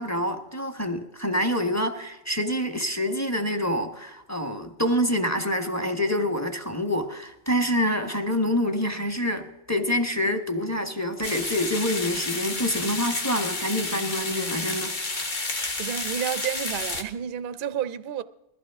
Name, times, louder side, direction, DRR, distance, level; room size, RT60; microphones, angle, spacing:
voice 1, 0.0-14.9, equal, 15° left, 1.1 m, -26 dB
sound 1, 11.2-17.0, left 2 dB, 35° left, 1.5 m, -31 dB
voice 2, 15.8-18.2, right 9 dB, 50° right, 0.6 m, -30 dB
21.0 x 15.0 x 3.5 m
omnidirectional pair, 1.4 m